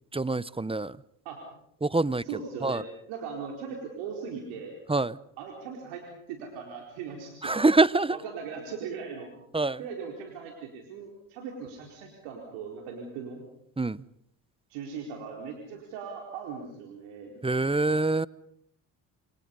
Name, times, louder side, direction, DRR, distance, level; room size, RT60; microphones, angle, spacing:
voice 1, 0.1-1.0 1.8-2.2 2.6-2.8 4.9-5.2 7.4-8.2 9.5-9.8 13.8-14.0 17.4-18.3, right 3 dB, 10° right, 0.9 m, -25 dB
voice 2, 2.2-4.7 5.4-7.5 8.1-9.3 9.8-13.4 14.7-17.4, right 6 dB, 80° right, 4.5 m, -39 dB
27.5 x 25.5 x 5.5 m
hypercardioid pair, 55°, 48 cm